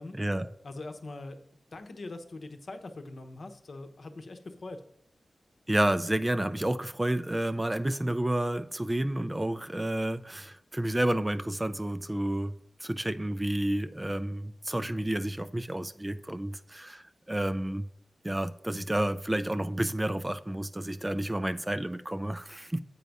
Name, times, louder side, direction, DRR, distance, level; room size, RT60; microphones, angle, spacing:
voice 1, 0.1-0.5 5.7-17.9 18.2-22.8, right 1 dB, 15° right, 12 dB, 0.3 m, -30 dB
voice 2, 0.6-1.4 1.7-4.8, left 2 dB, 55° left, 6 dB, 0.9 m, -42 dB
8.3 x 4.6 x 5.3 m, 0.72 s
wide cardioid pair, 100°, 0 cm